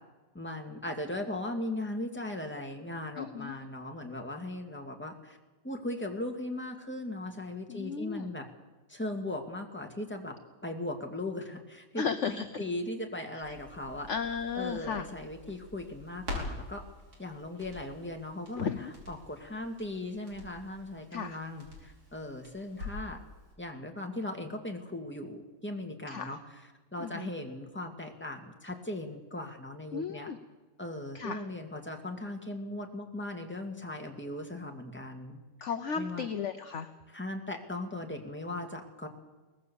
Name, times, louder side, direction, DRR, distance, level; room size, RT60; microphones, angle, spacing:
voice 1, 0.3-5.4 5.6-8.5 8.9-10.4 10.6-14.1 14.5-16.8 17.2-23.2 23.6-26.6 26.9-30.3 30.8-35.4 36.0-36.3 37.1-39.1, left 1 dB, 5° left, 2 dB, 2.1 m, -38 dB
voice 2, 3.2-3.6 7.7-8.3 12.0-12.5 13.5-13.6 14.1-15.1 18.6-18.9 21.1-21.4 26.1-26.3 27.0-27.3 29.9-30.4 31.1-31.4 35.6-36.9, left 6 dB, 50° left, 8 dB, 1.0 m, -34 dB
Crackle, 13.4-23.2 23.5-23.6, left 2 dB, 50° right, 5.6 m, -45 dB
22.5 x 19.0 x 7.1 m, 1.2 s
omnidirectional pair, 2.0 m